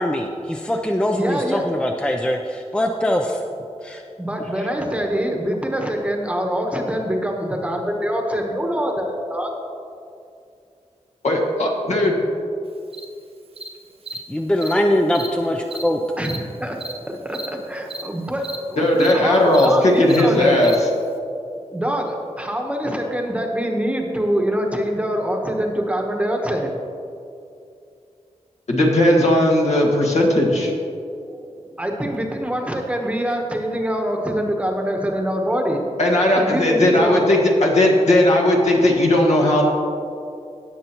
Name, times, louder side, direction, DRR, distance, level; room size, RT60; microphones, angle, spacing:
voice 1, 0.0-3.4 3.8-4.0 14.3-16.0, left 1 dB, 10° left, 2 dB, 0.5 m, -22 dB
voice 2, 1.1-1.6 4.2-9.5 16.2-16.8 17.1-20.5 21.7-26.7 31.3-36.0 36.3-37.2, equal, 10° right, 1 dB, 1.1 m, -24 dB
voice 3, 11.2-12.2 18.8-20.7 28.7-30.7 36.0-39.6, left 1 dB, 70° left, -1 dB, 1.7 m, -17 dB
Cricket, 12.9-13.0 13.6-13.7 14.1-14.2 14.6-14.7 15.1-15.3 15.7-15.8 16.2-16.4 16.8-16.9 17.3-17.5 17.9-18.0 18.4-18.6 19.0-19.1 19.5-19.7 20.1-20.2 20.6-20.7, right 2 dB, 55° right, 0.8 m, -32 dB
17.5 x 6.8 x 3.0 m, 2.5 s
wide cardioid pair, 130°, 12 cm